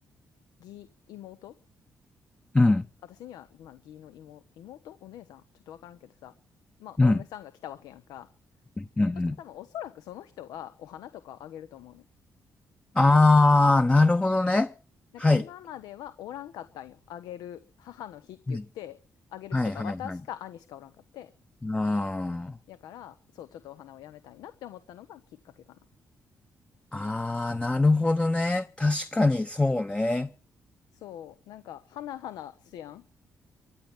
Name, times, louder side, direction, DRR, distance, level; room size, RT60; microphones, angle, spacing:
voice 1, 0.6-1.5 3.1-6.3 6.8-8.3 9.4-12.1 15.1-19.0 19.3-21.3 22.7-25.6 30.9-33.0, left 11 dB, 85° left, 0.9 m, -43 dB
voice 2, 2.5-2.8 7.0-7.2 8.8-9.4 12.9-14.7 15.2-15.5 18.5-18.6 19.5-20.2 21.6-22.6 26.9-30.3, left 2 dB, 15° left, 0.8 m, -23 dB
14.5 x 9.0 x 8.9 m
cardioid pair, 70°, 6 cm